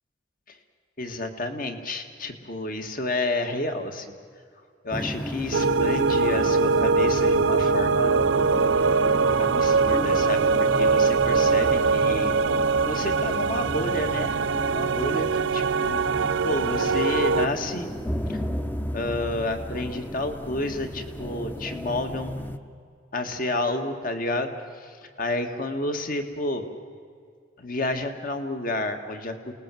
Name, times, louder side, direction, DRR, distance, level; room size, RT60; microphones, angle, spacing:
voice 1, 1.0-4.1 4.8-8.5 9.4-12.3 12.9-15.3 15.5-17.9 18.3-18.4 18.9-22.3 23.1-24.5 24.8-26.6 27.6-29.4, left 2 dB, 45° left, 6 dB, 1.9 m, -30 dB
sound 1, 4.9-22.6, equal, 10° left, 0.9 m, -35 dB
sound 2, 5.5-17.5, right 4 dB, 80° right, 0.6 m, -22 dB
28.0 x 19.5 x 7.7 m, 2.2 s
head